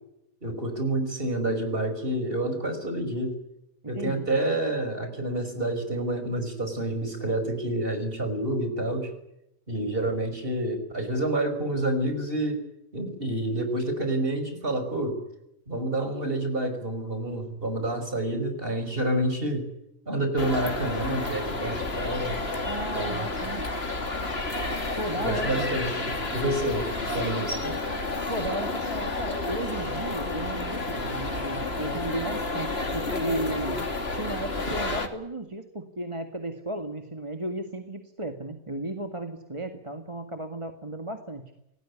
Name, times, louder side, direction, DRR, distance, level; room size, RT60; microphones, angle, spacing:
voice 1, 0.4-3.4 3.9-9.1 9.7-12.6 12.9-15.2 15.7-19.7 20.1-22.4 22.9-23.3 25.1-26.9 27.1-27.8, right 1 dB, 40° right, 8 dB, 5.7 m, -28 dB
voice 2, 3.8-4.3 22.6-23.7 25.0-25.8 28.3-33.8 34.1-41.4, right 1 dB, 20° right, 5 dB, 2.1 m, -34 dB
sound 1, 20.4-35.1, left 2 dB, 45° left, 3.0 m, -31 dB
27.0 x 19.0 x 9.7 m, 0.86 s
omnidirectional pair, 1.4 m